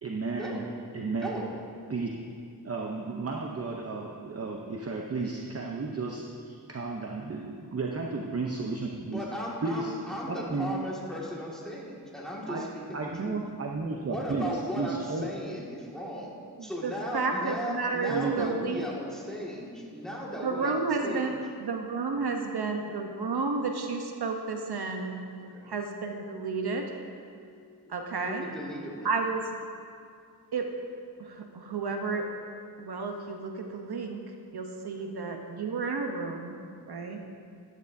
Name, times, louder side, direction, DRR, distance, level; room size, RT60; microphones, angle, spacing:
voice 1, 0.0-0.7 0.9-1.3 1.9-2.1 2.6-6.3 6.7-9.2 9.6-9.9 10.3-10.7 12.5-12.6 12.9-14.5 14.8-15.3 18.1-18.4, right 3 dB, 35° right, 0 dB, 0.7 m, -33 dB
voice 2, 9.1-13.4 13.9-16.3 16.6-21.4 22.1-22.2 25.5-25.7 28.2-29.1 35.0-35.1 37.0-37.3, equal, ahead, -5 dB, 1.9 m, -37 dB
voice 3, 16.6-18.9 20.4-21.3 21.6-25.2 25.6-26.9 27.4-28.5 29.0-29.5 30.5-30.7 31.2-32.3 32.8-34.2 34.5-36.6 36.9-37.2, right 4 dB, 70° right, 3 dB, 0.9 m, -32 dB
14.0 x 11.0 x 2.7 m, 2.3 s
wide cardioid pair, 120°, 41 cm